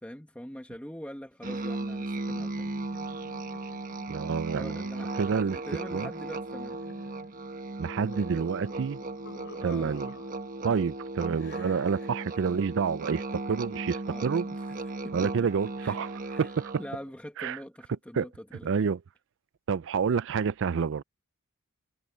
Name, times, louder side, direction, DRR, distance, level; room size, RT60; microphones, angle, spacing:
voice 1, 0.0-2.8 4.5-6.8 9.6-10.2 14.1-15.5 15.8-16.0 16.3-16.5 16.8-18.7, equal, 5° left, 1.6 m, -44 dB
Musical instrument, 1.4-17.0, right 2 dB, 40° right, 1.2 m, -36 dB
sound 1, 2.3-10.8 11.4-12.5, left 3 dB, 55° left, 6.7 m, -52 dB
voice 2, 4.1-4.9 5.2-5.6 5.9-6.1 7.8-9.0 9.6-10.1 10.6-14.4 15.1-16.1 16.4-16.7 17.4-17.6 18.2-18.3 18.6-19.0 19.7-21.0, right 6 dB, 55° right, 0.4 m, -28 dB
head